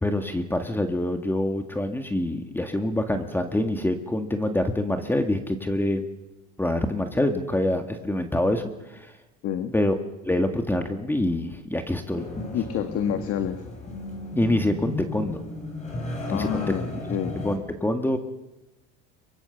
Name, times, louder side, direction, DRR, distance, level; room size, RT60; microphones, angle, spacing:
voice 1, 0.0-6.0 6.6-9.1 9.7-9.9 10.2-12.3 14.4-15.4 16.3-16.6 17.4-18.2, left 1 dB, 5° left, 6 dB, 1.9 m, -26 dB
voice 2, 9.4-9.7 12.2-12.3 12.5-13.6 16.3-17.4, left 9 dB, 50° left, 7 dB, 1.8 m, -28 dB
sound 1, 12.1-17.6, left 2 dB, 20° left, 7.0 m, -34 dB
23.0 x 23.0 x 7.1 m, 1.0 s
supercardioid pair, 115°, 32 cm